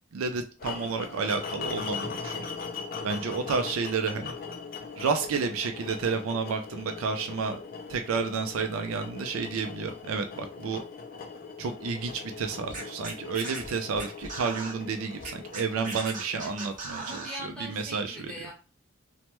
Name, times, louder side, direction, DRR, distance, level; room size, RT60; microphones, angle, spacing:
voice 1, 0.1-2.6 3.0-4.3 5.0-7.6 7.9-10.8 11.6-17.3 17.6-18.3, right 5 dB, 80° right, 0.4 m, -31 dB
sound 1, 0.6-16.7, left 5 dB, 45° left, 0.4 m, -40 dB
Scratching (performance technique), 12.7-14.7 15.2-17.4, right 3 dB, 40° right, 0.8 m, -38 dB
voice 2, 16.4-16.7 17.0-18.5, equal, 5° left, 1.0 m, -41 dB
3.1 x 2.1 x 2.9 m
head